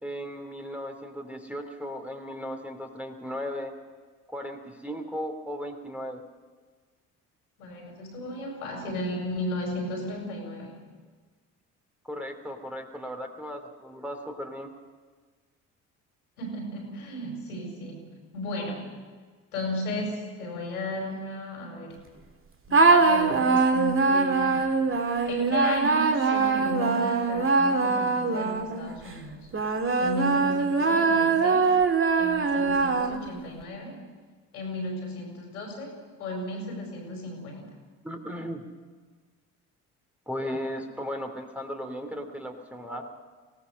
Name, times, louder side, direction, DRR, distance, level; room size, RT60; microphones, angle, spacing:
voice 1, 0.0-3.7 4.3-6.2 12.1-14.7 38.0-38.6 40.3-43.1, equal, 5° right, 3 dB, 3.0 m, -36 dB
voice 2, 7.6-10.8 16.4-18.0 18.3-18.9 19.5-22.0 22.7-24.7 25.3-29.5 30.0-31.7 32.2-34.0 34.5-37.7, left 1 dB, 80° left, 2 dB, 5.1 m, -34 dB
sound 1, 22.7-28.9 29.5-33.4, right 4 dB, 30° right, 2.3 m, -23 dB
24.5 x 18.0 x 6.4 m, 1.5 s
figure-of-eight pair, 50°, 44 cm